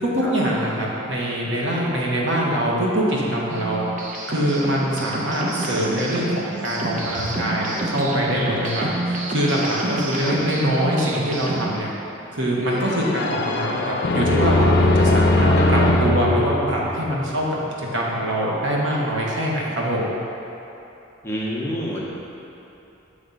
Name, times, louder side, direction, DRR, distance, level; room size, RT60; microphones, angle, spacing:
voice 1, 0.0-3.9 4.3-11.9 12.3-17.5 17.8-20.2, equal, 70° right, -4 dB, 1.1 m, -23 dB
sound 1, 3.5-11.8, right 2 dB, 40° right, 0.6 m, -28 dB
sound 2, 12.7-17.4, left 1 dB, 55° left, 0.4 m, -20 dB
voice 2, 21.2-22.1, equal, 15° left, -5 dB, 0.7 m, -28 dB
7.1 x 3.4 x 5.2 m, 3.0 s
head